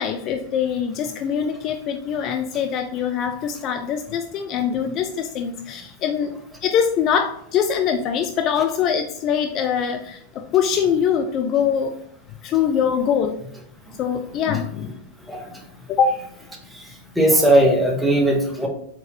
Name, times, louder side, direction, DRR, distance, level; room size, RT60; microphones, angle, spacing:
voice 1, 0.0-6.3 6.6-11.9 12.4-13.4 14.0-14.9 15.9-16.2, left 7 dB, 35° left, 6 dB, 0.3 m, -23 dB
voice 2, 17.2-18.7, right 1 dB, 5° right, 1 dB, 0.9 m, -17 dB
4.1 x 3.7 x 2.8 m, 0.70 s
figure-of-eight pair, 90°, 0 cm